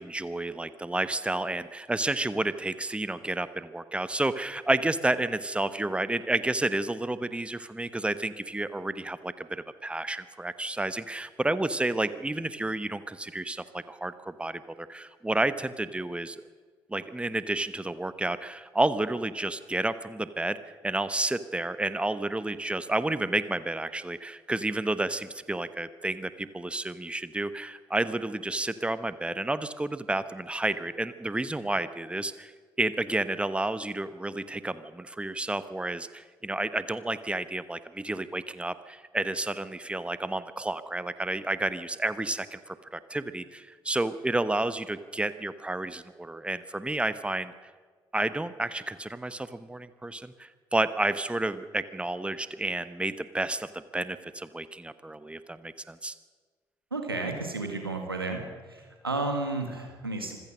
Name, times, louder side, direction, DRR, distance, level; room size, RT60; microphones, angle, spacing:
voice 1, 0.0-16.4 16.9-20.6 20.8-32.5 32.8-47.5 48.1-56.1, right 2 dB, 10° right, 13 dB, 1.1 m, -31 dB
voice 2, 56.9-58.4 59.0-60.4, right 3 dB, 90° right, 4 dB, 1.9 m, -31 dB
25.5 x 16.0 x 6.4 m, 1.5 s
figure-of-eight pair, 45°, 12 cm